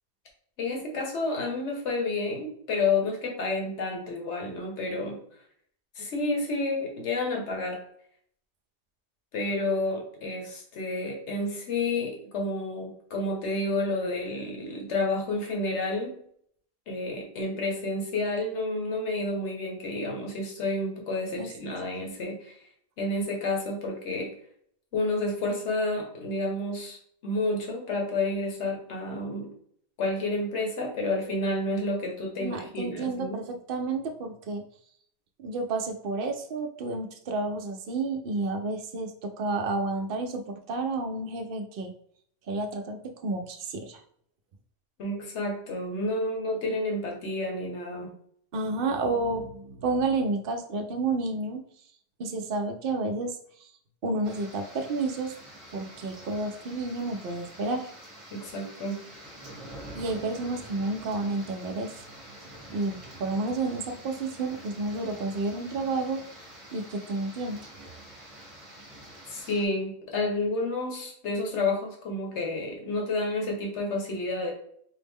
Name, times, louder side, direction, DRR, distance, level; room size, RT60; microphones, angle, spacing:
voice 1, 0.6-5.2 6.0-7.8 9.3-16.2 16.9-22.6 23.0-24.3 24.9-27.0 27.2-29.5 30.0-33.4 45.0-48.1 58.3-59.0 69.3-74.5, left 2 dB, 85° left, 0 dB, 1.3 m, -30 dB
voice 2, 32.4-34.6 35.4-41.9 42.5-44.0 48.5-51.6 52.2-53.7 54.0-55.3 55.7-57.9 59.9-61.9 62.7-66.2 66.7-67.6, right 3 dB, 60° right, 4 dB, 0.7 m, -30 dB
sound 1, 54.2-69.6, right 1 dB, 30° right, 0.9 m, -46 dB
4.7 x 2.1 x 3.5 m, 0.63 s
omnidirectional pair, 1.2 m